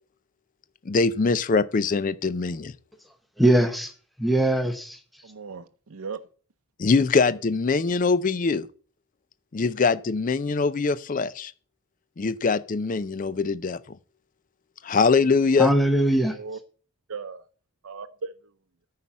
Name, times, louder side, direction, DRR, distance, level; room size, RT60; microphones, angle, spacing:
voice 1, 0.9-2.7 6.8-8.7 9.5-11.5 12.2-14.0 14.8-15.7, left 4 dB, 35° left, 0.4 m, -23 dB
voice 2, 3.4-3.9 4.2-5.0 15.6-16.4, right 1 dB, ahead, 0.9 m, -21 dB
voice 3, 5.2-6.2 16.3-16.6 17.1-17.4 17.8-18.3, right 5 dB, 75° right, 0.6 m, -37 dB
9.4 x 5.7 x 7.3 m
head